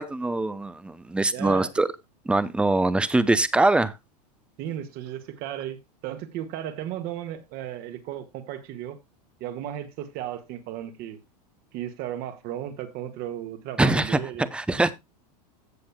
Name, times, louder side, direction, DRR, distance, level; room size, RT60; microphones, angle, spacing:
voice 1, 0.0-1.9 2.3-3.9 13.8-14.9, right 2 dB, 5° right, 0.6 m, -23 dB
voice 2, 1.3-1.8 4.6-9.0 9.4-11.2 11.7-14.5, right 11 dB, 45° right, 1.7 m, -35 dB
15.5 x 7.0 x 2.3 m
supercardioid pair, 130°, 21 cm